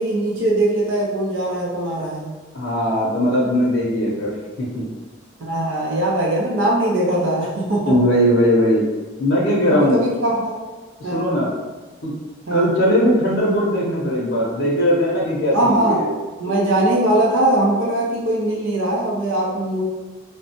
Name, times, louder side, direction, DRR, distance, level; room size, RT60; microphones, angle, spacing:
voice 1, 0.0-2.3 5.4-8.0 9.7-10.5 11.0-11.3 12.5-12.7 15.5-16.0 16.4-19.8, right 1 dB, 85° right, -4 dB, 0.6 m, -20 dB
voice 2, 2.5-4.3 4.6-4.8 7.9-8.9 9.2-10.0 11.0-11.5 12.0-12.2 12.5-16.1, equal, 75° left, -5 dB, 0.6 m, -19 dB
3.1 x 2.1 x 2.7 m, 1.3 s
head